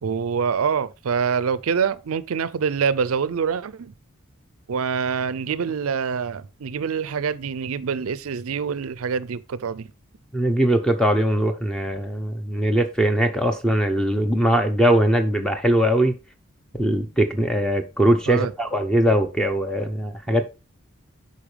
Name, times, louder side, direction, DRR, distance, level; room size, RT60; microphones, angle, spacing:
voice 1, 0.0-3.9 4.7-9.9 18.3-18.5, right 6 dB, 80° right, 0.5 m, -25 dB
voice 2, 10.3-16.2 16.8-20.4, right 1 dB, 5° left, 0.8 m, -21 dB
8.6 x 5.4 x 3.3 m
head